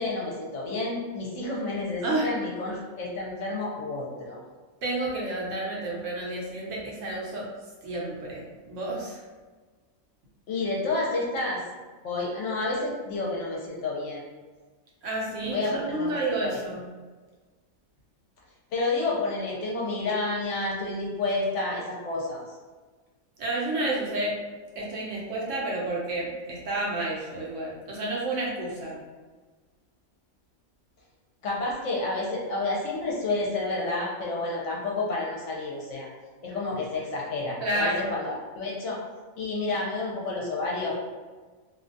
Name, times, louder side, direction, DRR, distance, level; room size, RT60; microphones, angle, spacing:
voice 1, 0.0-4.4 10.5-11.6 12.0-14.2 15.4-16.5 18.7-22.4 31.4-36.1 36.4-39.0 39.4-41.0, left 2 dB, 65° left, -3 dB, 0.8 m, -30 dB
voice 2, 4.8-7.5 7.8-9.2 15.0-16.9 23.4-24.4 24.8-29.0 37.6-38.1, right 2 dB, 70° right, -3 dB, 0.9 m, -30 dB
2.5 x 2.2 x 2.5 m, 1.3 s
omnidirectional pair, 1.4 m